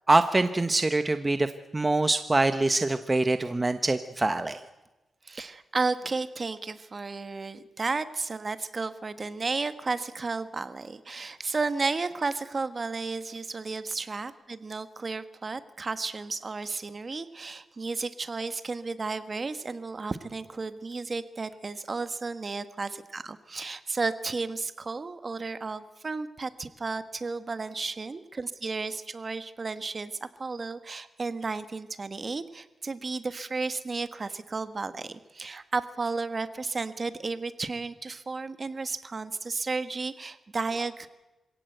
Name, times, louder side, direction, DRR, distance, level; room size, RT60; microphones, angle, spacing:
voice 1, 0.1-1.5 1.7-4.6, right 2 dB, 25° right, 9 dB, 1.1 m, -24 dB
voice 2, 5.2-41.1, right 4 dB, 40° right, 11 dB, 1.4 m, -33 dB
26.5 x 17.0 x 8.0 m, 1.1 s
cardioid pair, 80°, 0 cm